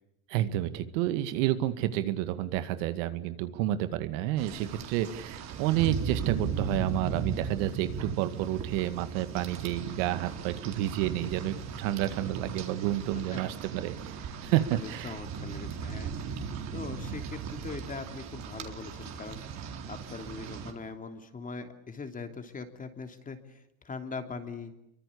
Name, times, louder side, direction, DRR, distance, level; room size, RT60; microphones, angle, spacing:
voice 1, 0.3-15.2, right 13 dB, 65° right, 11 dB, 2.1 m, -30 dB
Rain, 4.4-20.7, right 5 dB, 40° right, 4.0 m, -37 dB
voice 2, 14.4-16.1 16.7-24.7, left 4 dB, 20° left, 7 dB, 3.1 m, -41 dB
27.5 x 24.5 x 8.6 m, 0.80 s
supercardioid pair, 125°, 41 cm